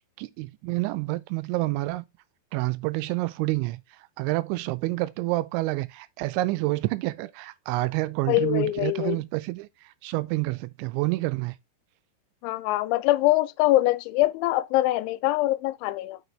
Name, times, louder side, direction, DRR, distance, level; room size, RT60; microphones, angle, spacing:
voice 1, 0.2-2.1 2.5-3.8 4.2-11.6, right 20 dB, 85° right, 2.8 m, -28 dB
voice 2, 8.3-9.2 12.4-16.2, left 17 dB, 85° left, 2.9 m, -23 dB
6.7 x 6.3 x 3.2 m
omnidirectional pair, 5.4 m